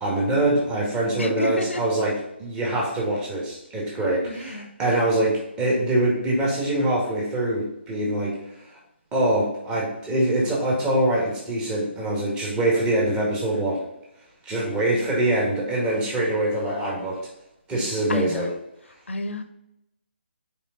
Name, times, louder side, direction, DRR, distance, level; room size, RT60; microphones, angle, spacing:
voice 1, 0.0-8.3 9.1-13.8 14.4-17.2 17.7-18.5, right 1 dB, 15° right, -4 dB, 1.9 m, -24 dB
voice 2, 1.2-1.8 4.2-4.7 18.1-18.5 19.1-19.4, left 2 dB, 85° left, 8 dB, 0.9 m, -29 dB
5.6 x 4.9 x 3.9 m, 0.83 s
figure-of-eight pair, 150°, 6 cm